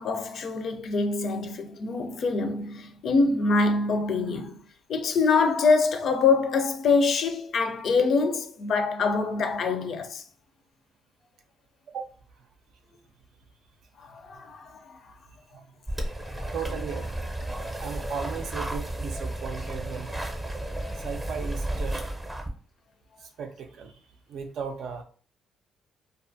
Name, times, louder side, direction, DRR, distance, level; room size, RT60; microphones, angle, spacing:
voice 1, 0.0-4.6 4.9-10.2 14.0-15.0 16.3-16.5 20.8-21.0, left 4 dB, 65° left, 0.4 m, -25 dB
sound 1, 15.9-22.5, right 1 dB, 15° right, 0.6 m, -33 dB
voice 2, 16.5-17.1 17.8-20.2 21.0-22.0 23.2-24.0 24.3-25.0, right 6 dB, 70° right, 0.5 m, -36 dB
2.5 x 2.4 x 2.5 m
cardioid pair, 90°, 0 cm